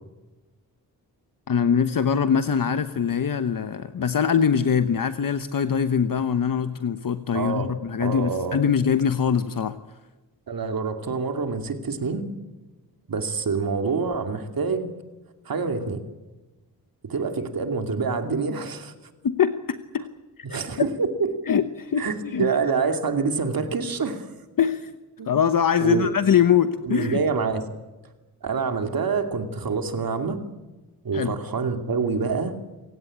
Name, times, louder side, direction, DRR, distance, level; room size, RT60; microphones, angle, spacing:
voice 1, 1.5-9.8 19.2-20.0 20.8-20.9 21.5-22.5 24.6-24.9 25.3-27.2 31.1-31.3, left 7 dB, 60° left, 11 dB, 1.0 m, -23 dB
voice 2, 7.3-7.7 8.0-8.6 10.5-12.2 13.1-14.9 15.5-16.0 17.0-18.9 20.4-21.3 22.0-24.3 25.2-25.3 25.8-26.1 26.8-27.7 28.4-30.4 31.0-32.6, right 5 dB, 65° right, 7 dB, 2.7 m, -26 dB
28.0 x 16.5 x 8.7 m, 1.1 s
wide cardioid pair, 135°, 38 cm